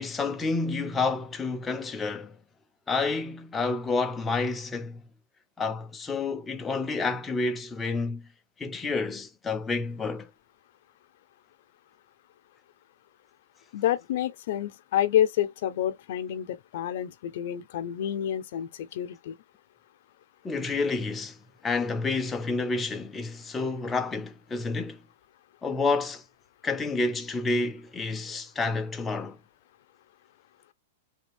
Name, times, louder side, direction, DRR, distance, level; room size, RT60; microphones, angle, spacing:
voice 1, 0.0-2.4 2.9-5.0 5.6-8.3 8.6-10.3 20.4-21.4 21.6-25.0 25.6-26.2 26.6-29.4, left 3 dB, 10° left, 0.5 m, -29 dB
voice 2, 13.7-19.4, left 11 dB, 55° left, 0.6 m, -28 dB
3.4 x 2.4 x 3.3 m
supercardioid pair, 165°, 0 cm